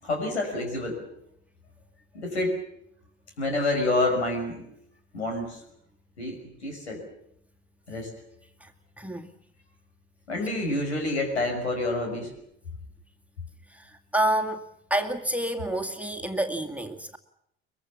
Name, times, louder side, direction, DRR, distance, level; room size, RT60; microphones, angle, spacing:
voice 1, 0.0-1.0 2.1-2.6 3.4-4.6 5.1-5.6 6.2-7.1 7.9-8.1 10.3-12.3, left 2 dB, 85° left, 2 dB, 5.8 m, -28 dB
voice 2, 9.0-9.3 13.7-14.7 14.9-17.2, right 1 dB, 5° right, 3 dB, 2.1 m, -28 dB
23.0 x 22.5 x 7.2 m, 0.74 s
figure-of-eight pair, 60°, 32 cm